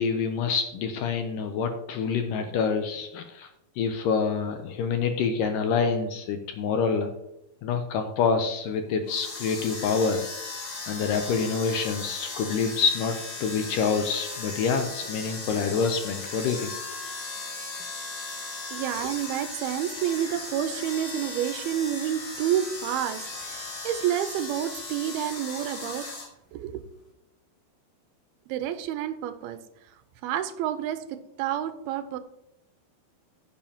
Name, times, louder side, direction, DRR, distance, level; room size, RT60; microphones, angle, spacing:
voice 1, 0.0-3.5 3.8-7.1 7.6-10.2 10.9-16.7, left 5 dB, 80° left, 6 dB, 2.0 m, -27 dB
sound 1, 9.0-26.3, left 3 dB, 50° left, 3.6 m, -37 dB
voice 2, 18.7-26.1 26.5-26.8 28.5-29.6 30.2-32.2, right 11 dB, 90° right, 10 dB, 2.6 m, -29 dB
15.5 x 7.0 x 2.9 m, 0.84 s
omnidirectional pair, 4.4 m